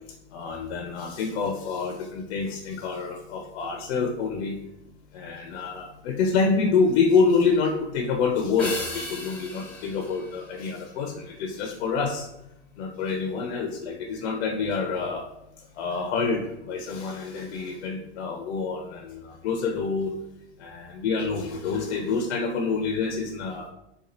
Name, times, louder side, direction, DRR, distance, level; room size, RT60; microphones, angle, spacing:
voice 1, 0.3-4.6 5.1-12.3 12.8-15.2 15.7-20.1 20.6-23.7, left 5 dB, 70° left, 3 dB, 0.6 m, -27 dB
sound 1, 8.6-11.2, left 2 dB, 5° left, 0.8 m, -37 dB
4.2 x 2.3 x 2.6 m, 0.85 s
hypercardioid pair, 110°, 35 cm